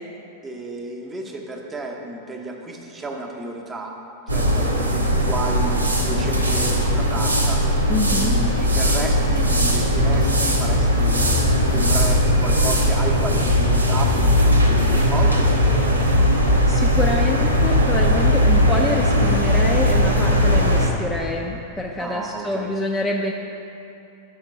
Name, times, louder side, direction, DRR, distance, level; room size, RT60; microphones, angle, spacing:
voice 1, 0.4-3.9 4.3-7.7 8.1-11.4 11.7-16.2 22.0-22.7, right 2 dB, 20° right, 1 dB, 0.7 m, -32 dB
sound 1, 4.3-20.9, equal, 80° right, 0.6 m, -18 dB
voice 2, 7.9-8.3 16.7-23.3, left 2 dB, 10° left, -1 dB, 0.4 m, -26 dB
5.7 x 4.4 x 6.1 m, 2.8 s
figure-of-eight pair, 90°, 0 cm